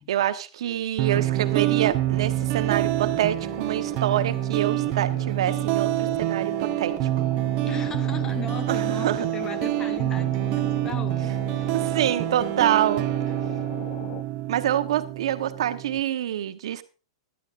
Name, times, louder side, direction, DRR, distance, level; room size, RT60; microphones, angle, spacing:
voice 1, 0.1-6.9 8.7-9.2 11.7-13.0 14.5-16.8, right 11 dB, 70° right, 1.2 m, -26 dB
sound 1, 1.0-14.2, left 12 dB, 50° left, 0.9 m, -40 dB
sound 2, 1.0-16.0, right 16 dB, 40° right, 0.6 m, -26 dB
voice 2, 7.7-12.0 13.3-13.4, left 6 dB, 20° left, 0.8 m, -37 dB
16.5 x 11.5 x 2.6 m
hypercardioid pair, 135°, 3 cm